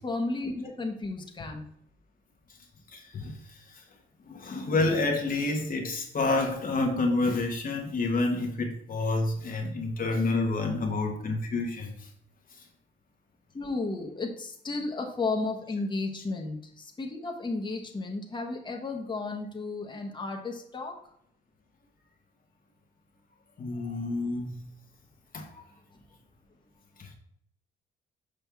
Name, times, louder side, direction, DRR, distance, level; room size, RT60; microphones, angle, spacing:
voice 1, 0.0-1.6 13.5-16.6 17.0-20.9, left 3 dB, 25° left, 1 dB, 1.2 m, -33 dB
voice 2, 2.9-3.8 4.3-12.1 12.6-12.7 23.6-24.6 25.3-25.6 27.0-27.1, left 3 dB, 45° left, 2 dB, 1.1 m, -29 dB
6.3 x 5.3 x 3.5 m, 0.68 s
cardioid pair, 90°, 20 cm